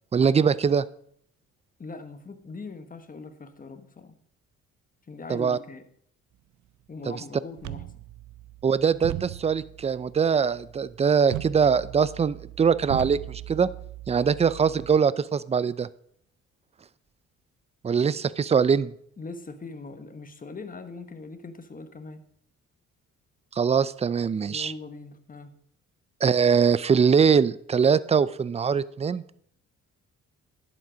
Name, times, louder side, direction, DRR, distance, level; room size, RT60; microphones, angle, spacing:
voice 1, 0.1-0.8 5.3-5.6 7.1-7.2 8.6-13.7 14.1-15.9 17.8-18.9 23.6-24.7 26.2-29.2, right 6 dB, 20° right, 18 dB, 0.4 m, -22 dB
voice 2, 1.8-4.1 5.1-5.9 6.9-7.8 19.2-22.2 24.5-25.5, left 3 dB, 30° left, 9 dB, 1.2 m, -41 dB
sound 1, 7.6-15.0, right 15 dB, 75° right, 0.6 m, -39 dB
10.5 x 7.5 x 5.0 m, 0.66 s
cardioid pair, 90°, 30 cm